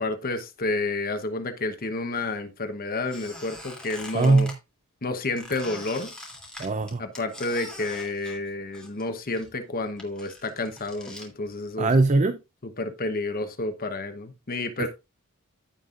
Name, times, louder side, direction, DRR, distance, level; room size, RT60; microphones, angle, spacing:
voice 1, 0.0-4.5 5.0-6.1 7.0-11.9 12.6-14.9, left 2 dB, 40° left, 1.0 m, -30 dB
Squeak, 3.1-4.6 5.4-9.1 9.3-11.3, left 1 dB, 5° left, 2.9 m, -43 dB
voice 2, 4.1-4.5 6.6-7.0 11.8-12.4, right 3 dB, 35° right, 0.5 m, -20 dB
15.5 x 5.4 x 2.5 m
head